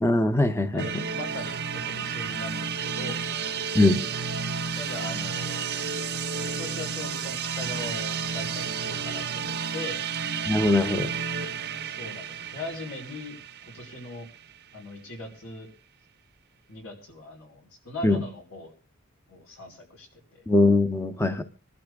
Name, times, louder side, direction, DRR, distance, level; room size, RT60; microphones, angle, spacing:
voice 1, 0.0-0.8 3.7-4.0 10.5-11.1 18.0-18.2 20.5-21.4, left 2 dB, 15° left, 7 dB, 0.7 m, -21 dB
voice 2, 0.7-3.2 4.8-5.7 6.4-10.0 11.8-13.4 13.7-14.3 14.7-15.7 16.7-18.7 19.3-20.4, left 2 dB, 80° left, 1 dB, 4.9 m, -40 dB
sound 1, 0.8-14.5, right 6 dB, 55° right, 0.7 m, -32 dB
26.0 x 12.0 x 2.3 m, 0.34 s
head